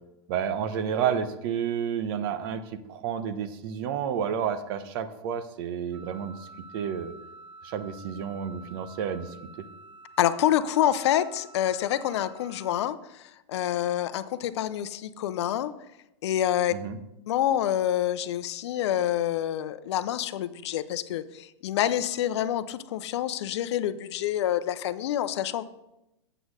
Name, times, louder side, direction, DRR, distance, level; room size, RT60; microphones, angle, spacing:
voice 1, 0.3-6.5 6.7-7.1 7.6-9.3 16.7-17.0, right 8 dB, 50° right, 11 dB, 0.8 m, -30 dB
Wind instrument woodwind instrument, 5.9-12.8, right 3 dB, 85° right, 0.6 m, -49 dB
voice 2, 10.2-15.7 16.2-16.7 17.3-25.6, left 11 dB, 65° left, 13 dB, 0.6 m, -27 dB
7.8 x 6.2 x 4.9 m, 0.89 s
hypercardioid pair, 135°, 15 cm